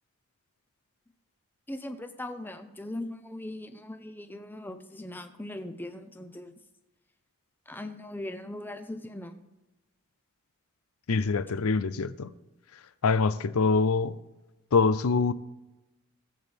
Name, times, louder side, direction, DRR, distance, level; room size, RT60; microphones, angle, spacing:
voice 1, 1.7-6.5 7.7-9.3, left 1 dB, 10° left, 0.7 m, -39 dB
voice 2, 11.1-12.3 13.0-14.1 14.7-15.3, left 4 dB, 90° left, 0.5 m, -24 dB
20.0 x 7.9 x 3.5 m
head